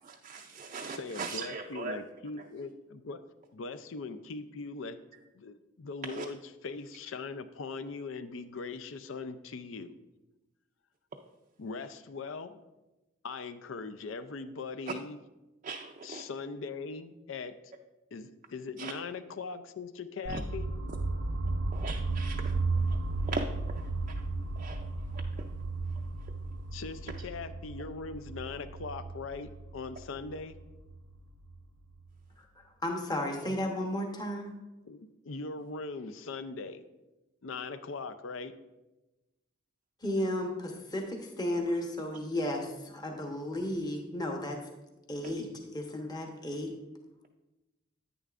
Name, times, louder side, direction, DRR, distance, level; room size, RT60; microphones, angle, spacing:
voice 1, 0.1-2.0 6.2-6.3 15.6-16.2 18.8-18.9 20.3-20.4 21.7-22.4 23.3-23.4 24.6-24.8 45.2-45.3, right 4 dB, 35° right, 2 dB, 0.4 m, -38 dB
voice 2, 0.9-3.2 3.5-5.0 5.3-9.9 11.6-12.6 13.2-15.2 16.0-17.5 18.1-20.7 26.7-30.6 34.9-36.8 37.4-38.5, left 4 dB, 70° left, 12 dB, 0.5 m, -40 dB
sound 1, 20.2-32.2, right 3 dB, 85° right, 0.6 m, -35 dB
voice 3, 32.4-34.5 40.0-44.6 45.1-46.7, left 1 dB, 20° left, 2 dB, 1.0 m, -34 dB
10.0 x 9.1 x 2.5 m, 1.0 s
head